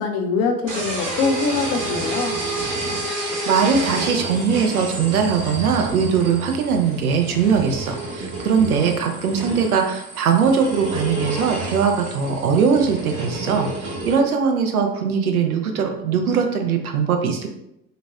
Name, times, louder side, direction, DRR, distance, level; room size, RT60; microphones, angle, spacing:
voice 1, 0.0-2.4, left 4 dB, 35° left, 2 dB, 0.5 m, -23 dB
sound 1, 0.7-14.1, right 2 dB, 55° right, 1.2 m, -29 dB
voice 2, 3.2-17.5, right 6 dB, 80° right, 4 dB, 0.6 m, -21 dB
3.9 x 2.1 x 2.3 m, 0.81 s
figure-of-eight pair, 75°, 44 cm